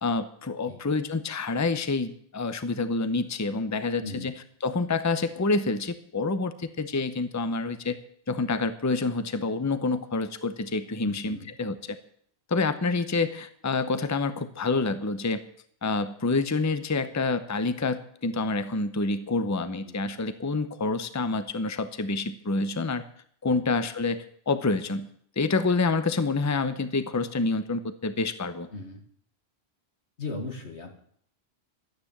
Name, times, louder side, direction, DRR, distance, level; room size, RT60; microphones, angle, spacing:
voice 1, 0.0-4.3 4.6-8.0 8.3-12.0 12.5-15.4 15.8-23.0 23.4-25.1 25.4-28.7, left 3 dB, 20° left, 11 dB, 0.7 m, -27 dB
voice 2, 4.0-4.3 11.0-11.5 19.9-20.3 23.5-23.6 28.7-29.0 30.2-31.0, left 3 dB, 85° left, 4 dB, 2.3 m, -38 dB
12.0 x 9.9 x 7.3 m, 0.62 s
omnidirectional pair, 1.1 m